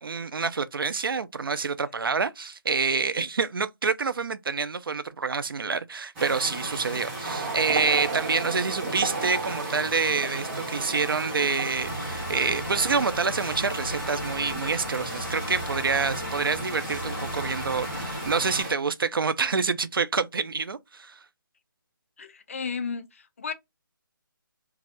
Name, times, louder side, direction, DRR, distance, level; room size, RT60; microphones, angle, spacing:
voice 1, 0.0-21.2, right 5 dB, 75° right, 0.5 m, -27 dB
sound 1, 6.2-18.7, right 1 dB, 10° right, 0.6 m, -35 dB
sound 2, 7.2-13.7 14.0-14.3, right 4 dB, 45° right, 0.9 m, -35 dB
sound 3, 11.8-18.6, left 1 dB, 55° left, 1.0 m, -37 dB
voice 2, 22.2-23.5, left 5 dB, 35° left, 0.4 m, -33 dB
2.6 x 2.4 x 3.2 m
figure-of-eight pair, 160°, 12 cm